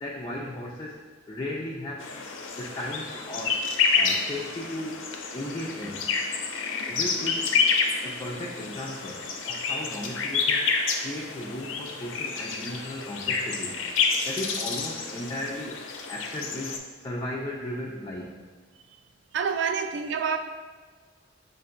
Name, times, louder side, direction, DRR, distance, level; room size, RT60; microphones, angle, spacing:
voice 1, 0.0-1.0 1.3-2.1 2.6-3.6 3.9-5.0 5.3-6.2 6.9-7.5 8.0-10.7 11.0-13.8 14.2-15.8 16.1-18.4, left 1 dB, 25° left, -3 dB, 0.3 m, -36 dB
sound 1, 2.0-16.8, left 5 dB, 85° left, 0.5 m, -29 dB
voice 2, 19.3-20.4, right 6 dB, 60° right, 7 dB, 0.3 m, -27 dB
6.4 x 2.5 x 2.5 m, 1.5 s
head